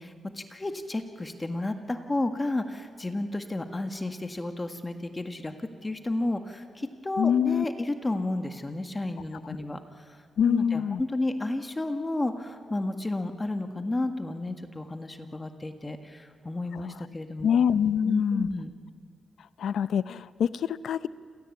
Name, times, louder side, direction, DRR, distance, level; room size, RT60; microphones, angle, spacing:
voice 1, 0.0-10.2 10.4-17.6 18.0-18.7, left 2 dB, 20° left, 6 dB, 1.8 m, -32 dB
voice 2, 7.2-7.6 10.4-11.0 17.4-18.5 19.6-21.1, left 8 dB, 75° left, 16 dB, 0.6 m, -25 dB
28.5 x 16.5 x 8.6 m, 2.1 s
cardioid pair, 80°, 0 cm